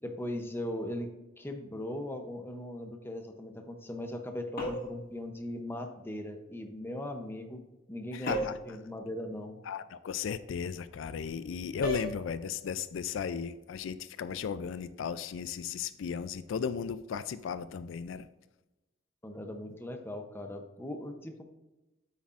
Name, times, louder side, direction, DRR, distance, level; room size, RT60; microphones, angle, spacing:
voice 1, 0.0-1.1 1.4-7.6 7.9-9.6 19.2-21.4, left 1 dB, 10° left, 5 dB, 0.7 m, -39 dB
sound 1, 4.6-5.1 8.3-8.7 11.8-12.2, equal, 50° left, 1.7 m, -34 dB
voice 2, 8.1-8.6 9.7-18.3, left 7 dB, 80° left, 14 dB, 0.4 m, -35 dB
9.3 x 8.2 x 2.5 m, 1.0 s
head